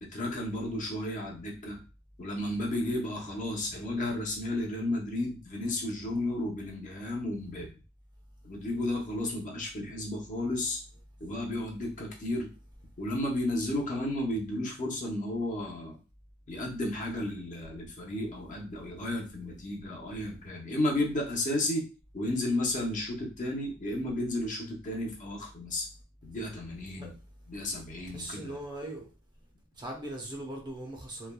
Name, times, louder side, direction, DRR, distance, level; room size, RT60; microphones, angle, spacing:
voice 1, 0.0-1.8 2.2-7.7 8.4-10.8 11.2-12.5 13.0-16.0 16.5-21.8 22.1-25.8 26.2-27.1 27.5-28.6, left 1 dB, 40° left, 0.7 m, -33 dB
voice 2, 28.1-29.1 29.8-31.3, right 1 dB, 20° right, 0.6 m, -39 dB
3.2 x 2.2 x 2.2 m
head